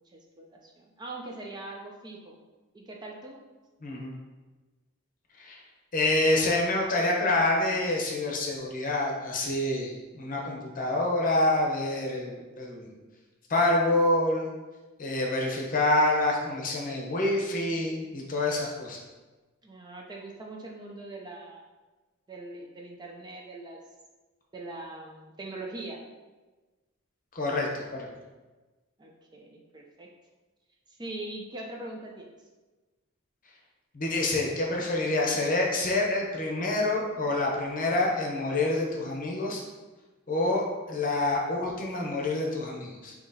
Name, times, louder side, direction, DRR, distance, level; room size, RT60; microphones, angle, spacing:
voice 1, 0.1-2.4 2.7-3.4 19.6-21.6 22.3-23.8 24.5-26.0 29.0-30.1 30.9-32.3, right 2 dB, 20° right, -1 dB, 0.4 m, -41 dB
voice 2, 3.8-4.2 5.4-5.6 5.9-12.9 13.5-14.5 15.0-19.0 27.3-28.1 33.9-39.6 40.3-43.1, left 2 dB, 40° left, -1 dB, 0.8 m, -27 dB
6.2 x 2.9 x 2.7 m, 1.2 s
head